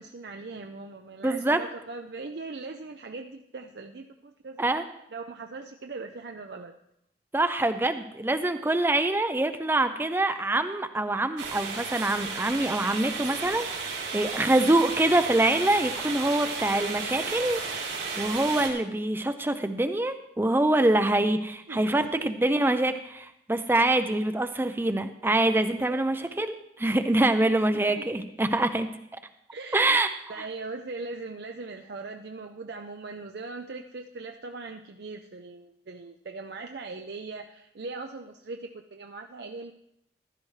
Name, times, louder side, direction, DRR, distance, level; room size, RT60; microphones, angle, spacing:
voice 1, 0.0-4.8 5.1-6.7 21.7-22.3 25.6-26.0 27.7-28.1 29.5-30.0 30.3-39.7, right 3 dB, 65° right, 4 dB, 0.6 m, -40 dB
voice 2, 1.2-1.6 4.6-4.8 7.3-13.9 14.1-28.9 29.7-30.1 30.4-30.5, right 2 dB, 10° right, 8 dB, 0.5 m, -25 dB
sound 1, 11.4-18.7, right 4 dB, 90° right, 3.1 m, -33 dB
15.0 x 12.0 x 3.2 m, 0.79 s
head